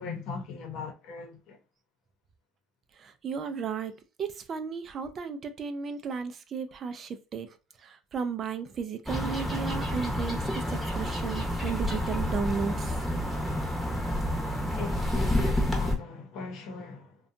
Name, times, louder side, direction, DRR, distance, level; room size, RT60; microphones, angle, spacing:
voice 1, 0.0-1.6 14.7-17.2, left 4 dB, 65° left, 0.8 m, -39 dB
voice 2, 3.0-3.9 4.2-7.5 7.8-13.0, right 6 dB, 40° right, 0.4 m, -34 dB
sound 1, 9.1-16.0, left 1 dB, ahead, 0.8 m, -29 dB
2.6 x 2.2 x 2.5 m
cardioid pair, 120°, 0 cm